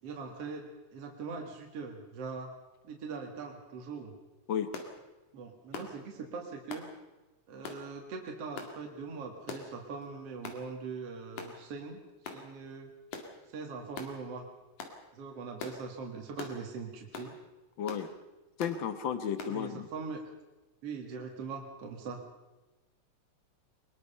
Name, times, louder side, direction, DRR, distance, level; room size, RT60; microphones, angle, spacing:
voice 1, 0.0-2.5 2.8-4.1 5.3-6.9 7.5-12.0 12.3-12.9 13.5-14.5 15.1-17.3 19.5-20.2 20.8-22.2, right 4 dB, 55° right, 1 dB, 2.9 m, -41 dB
sound 1, 4.7-4.9 5.7-6.0 6.7-6.9 7.6-7.8 8.6-8.8 9.5-9.7 10.4-10.6 11.4-11.6 12.2-12.4 13.1-13.3 14.0-14.1 14.8-15.0 15.6-15.8 16.4-16.6 17.1-17.3 17.9-18.1 18.6-18.8 19.4-19.6, left 5 dB, 85° left, 3.6 m, -42 dB
voice 2, 17.8-18.1 18.6-19.9, left 8 dB, 55° left, 11 dB, 1.4 m, -33 dB
22.0 x 21.5 x 5.6 m, 1.1 s
omnidirectional pair, 3.4 m